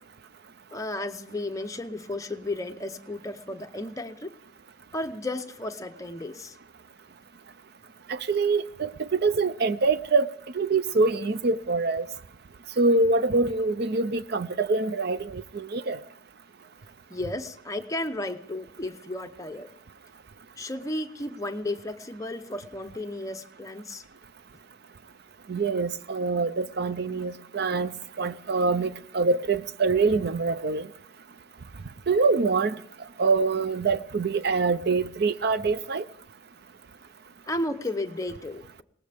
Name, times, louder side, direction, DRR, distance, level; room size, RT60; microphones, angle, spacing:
voice 1, 0.7-4.3 4.9-6.6 17.1-19.7 20.6-24.0 37.5-38.8, left 1 dB, 15° left, 0.8 m, -33 dB
voice 2, 8.1-10.3 10.5-12.1 12.8-16.0 25.5-30.9 32.1-32.8 33.2-36.0, right 3 dB, 55° right, 0.6 m, -25 dB
21.5 x 18.5 x 3.5 m
head